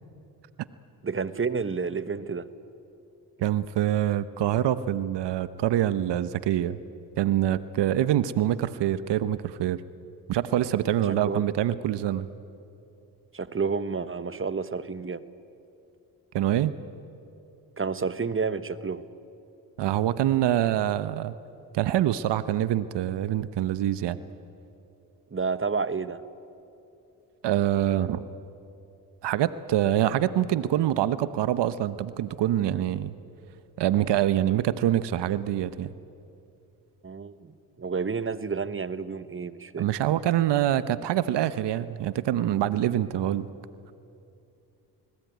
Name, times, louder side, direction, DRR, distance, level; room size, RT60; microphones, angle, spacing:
voice 1, 1.0-2.5 11.2-11.4 13.3-15.2 17.8-19.0 25.3-26.2 37.0-39.9, right 5 dB, 30° right, 14 dB, 1.2 m, -30 dB
voice 2, 3.4-6.8 7.2-9.8 10.3-12.3 16.3-16.7 19.8-21.3 21.7-24.2 27.4-28.3 29.2-33.1 33.8-35.9 39.8-43.5, right 12 dB, 75° right, 14 dB, 0.9 m, -25 dB
28.5 x 19.5 x 9.3 m, 2.7 s
supercardioid pair, 60°, 42 cm